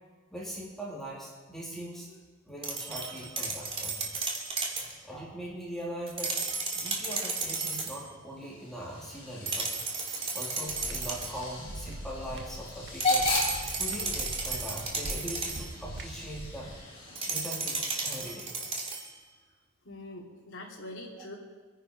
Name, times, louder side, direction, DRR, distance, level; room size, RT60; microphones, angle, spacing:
voice 1, 0.3-2.2 2.5-4.0 5.0-6.4 6.7-9.7 10.3-13.3 13.8-16.7 17.3-18.5, equal, ahead, -5 dB, 3.4 m, -41 dB
sound 1, 2.6-4.9 6.1-8.0 9.5-11.4 13.0-15.7 17.2-19.1, right 3 dB, 25° right, 2.6 m, -34 dB
Hiss / Train / Alarm, 8.3-18.0, left 2 dB, 25° left, 5.7 m, -36 dB
sound 2, 10.7-16.8, right 1 dB, 55° right, 1.5 m, -42 dB
voice 2, 19.8-21.3, left 1 dB, 60° left, -7 dB, 3.2 m, -44 dB
25.0 x 10.0 x 5.5 m, 1.4 s
head